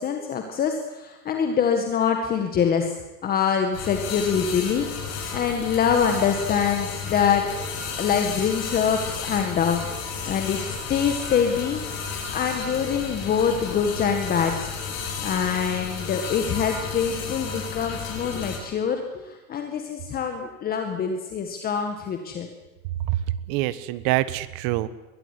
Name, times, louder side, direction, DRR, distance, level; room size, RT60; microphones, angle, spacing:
voice 1, 0.0-3.0 3.2-7.4 8.0-9.9 10.2-10.6 10.9-14.7 15.2-22.5, left 7 dB, 20° left, 4 dB, 1.9 m, -25 dB
sound 1, 3.7-18.6, left 5 dB, 35° left, 7.5 m, -33 dB
voice 2, 23.0-24.9, right 15 dB, 40° right, 16 dB, 1.3 m, -25 dB
22.0 x 17.0 x 9.9 m, 1.1 s
supercardioid pair, 155°, 43 cm